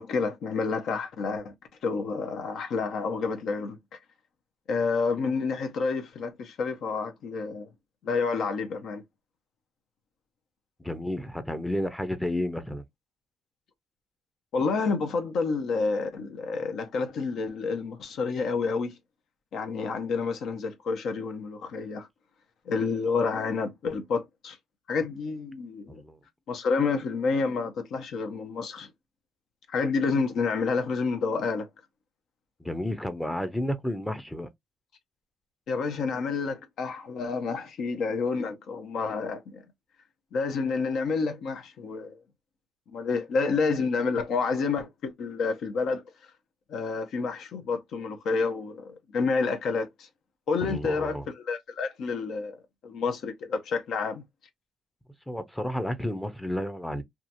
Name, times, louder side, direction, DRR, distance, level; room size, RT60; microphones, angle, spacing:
voice 1, 0.0-1.5 1.8-3.8 4.7-7.7 8.0-9.0 14.5-18.9 19.5-22.1 22.7-24.6 24.9-26.0 26.5-28.9 29.7-31.7 35.7-39.6 40.3-42.2 42.9-46.0 46.7-50.1 50.5-52.6 52.8-54.2, left 4 dB, 75° left, 0.7 m, -29 dB
voice 2, 10.8-12.8 25.9-26.2 32.6-34.5 50.6-51.2 55.3-57.0, left 1 dB, 5° left, 0.5 m, -31 dB
2.8 x 2.3 x 2.5 m
cardioid pair, 90°, 0 cm